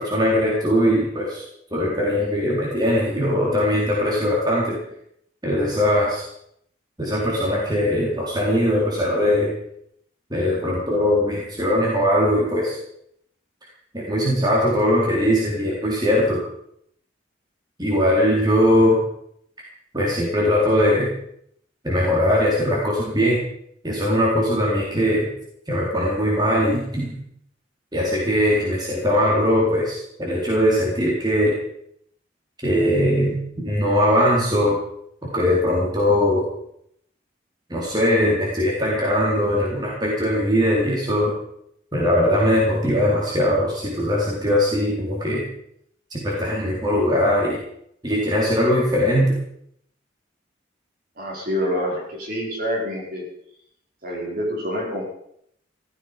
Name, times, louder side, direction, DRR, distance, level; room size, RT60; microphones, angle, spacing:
voice 1, 0.0-1.4 1.7-4.8 5.4-6.3 7.0-9.6 10.3-12.8 13.9-16.4 17.8-19.0 19.9-21.1 21.8-23.4 23.8-25.3 25.7-27.1 27.9-31.6 32.6-34.8 35.3-36.5 37.7-41.3 41.9-45.4 46.1-47.6 48.0-49.3, equal, 20° right, -4 dB, 3.9 m, -20 dB
voice 2, 51.2-53.2 54.0-55.1, equal, 45° right, -2 dB, 5.3 m, -27 dB
15.5 x 15.0 x 5.3 m, 0.71 s
head